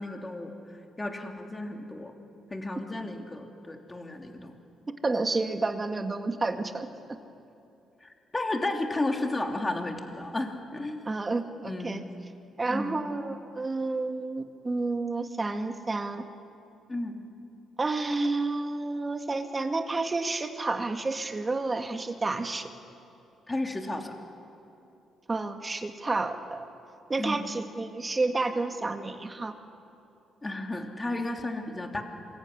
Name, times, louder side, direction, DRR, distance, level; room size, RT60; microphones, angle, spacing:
voice 1, 0.0-2.1 2.5-4.6 8.0-11.1 11.6-12.1 12.7-13.0 16.9-17.2 23.5-24.1 27.2-27.4 30.4-32.0, left 2 dB, 20° left, 3 dB, 3.1 m, -33 dB
voice 2, 5.0-6.9 11.1-12.0 12.6-16.2 17.8-22.7 25.3-26.7 27.1-29.5, right 3 dB, 25° right, 6 dB, 2.1 m, -30 dB
26.0 x 22.0 x 10.0 m, 2.7 s
cardioid pair, 90°, 0 cm